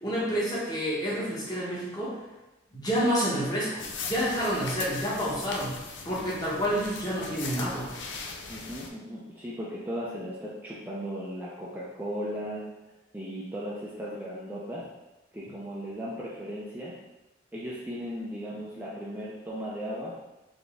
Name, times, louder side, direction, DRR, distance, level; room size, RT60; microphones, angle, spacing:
voice 1, 0.0-2.2 2.7-5.8 6.0-7.9, equal, 20° left, -6 dB, 1.2 m, -29 dB
sound 1, 3.8-8.9, left 4 dB, 80° left, 0.5 m, -39 dB
voice 2, 8.5-12.6 13.1-14.8 15.3-16.9 17.5-20.2, equal, 10° right, -7 dB, 0.5 m, -36 dB
4.1 x 3.4 x 3.5 m, 1.0 s
head